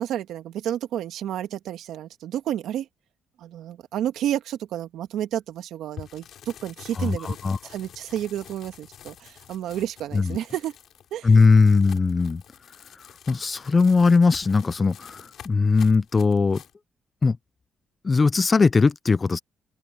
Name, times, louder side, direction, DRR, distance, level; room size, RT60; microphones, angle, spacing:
voice 1, 0.0-2.9 3.4-7.4 7.6-10.7 11.1-11.4, right 11 dB, 80° right, 2.1 m, -31 dB
sound 1, 6.0-16.7, left 10 dB, 70° left, 5.5 m, -47 dB
voice 2, 7.0-7.6 10.1-10.4 11.2-12.4 13.3-15.2 15.5-16.6 17.2-17.4 18.0-19.4, left 4 dB, 30° left, 0.4 m, -19 dB
open air
cardioid pair, 90°, 0 cm